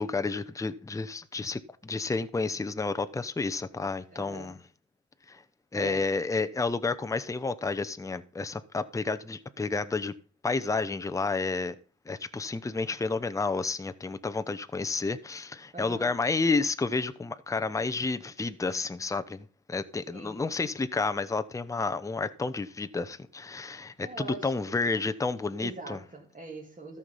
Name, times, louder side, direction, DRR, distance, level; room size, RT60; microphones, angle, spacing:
voice 1, 0.0-4.6 5.3-5.4 5.7-10.1 10.4-11.8 12.1-26.0, left 3 dB, 10° left, 0.7 m, -30 dB
voice 2, 4.1-4.6 5.7-6.0 15.7-16.1 20.1-20.4 24.0-24.8 25.6-27.0, right 3 dB, 25° right, 2.1 m, -43 dB
13.5 x 5.8 x 5.4 m
cardioid pair, 90°, 30 cm